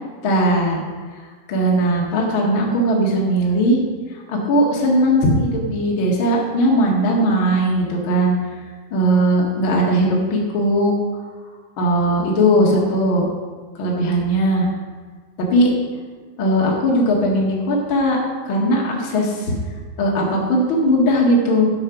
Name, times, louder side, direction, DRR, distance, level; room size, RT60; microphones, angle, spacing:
voice 1, 0.2-0.8 1.5-3.8 4.3-8.3 8.9-10.9 11.8-13.2 13.8-14.7 15.5-15.7 16.4-18.2 18.4-19.5 20.0-21.6, equal, 85° left, -3 dB, 1.1 m, -18 dB
9.6 x 6.6 x 5.9 m, 1.4 s
omnidirectional pair, 5.5 m